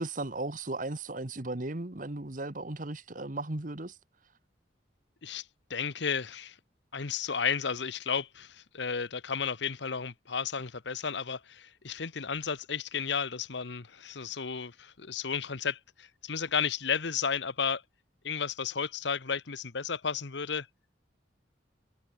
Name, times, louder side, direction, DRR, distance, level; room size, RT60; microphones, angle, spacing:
voice 1, 0.0-3.9, right 2 dB, 45° right, 1.4 m, -36 dB
voice 2, 5.7-6.6 6.9-17.8 18.2-20.7, left 6 dB, 70° left, 1.0 m, -33 dB
head